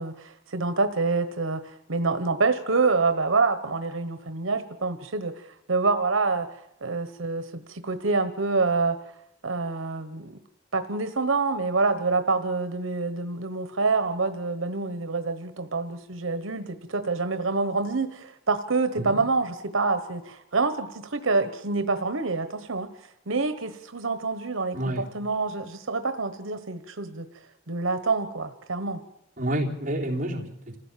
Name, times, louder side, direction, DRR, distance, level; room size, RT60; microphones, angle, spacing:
voice 1, 0.0-6.5 6.8-9.0 9.4-10.3 10.7-22.9 23.3-27.3 27.7-29.0, right 3 dB, 85° right, 9 dB, 1.2 m, -27 dB
voice 2, 24.7-25.0 29.4-30.8, right 1 dB, 40° right, -1 dB, 3.4 m, -29 dB
27.0 x 15.5 x 7.5 m, 0.83 s
head